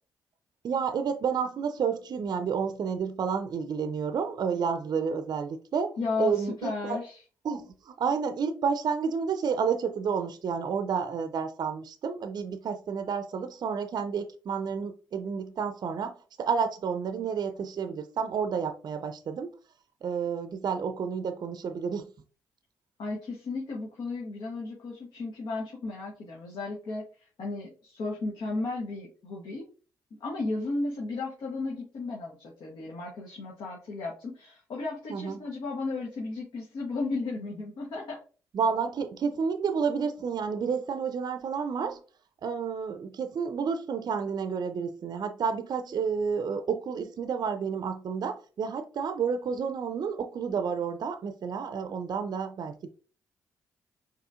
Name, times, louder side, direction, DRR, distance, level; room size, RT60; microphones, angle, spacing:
voice 1, 0.6-7.0 7.4-19.5 20.0-22.1 35.1-35.4 38.5-42.0 42.4-52.9, right 6 dB, 55° right, 0.5 m, -30 dB
voice 2, 6.0-7.2 23.0-27.1 27.4-29.7 30.2-38.2, left 3 dB, 65° left, 1.0 m, -34 dB
4.8 x 3.0 x 2.4 m
hypercardioid pair, 45°, 8 cm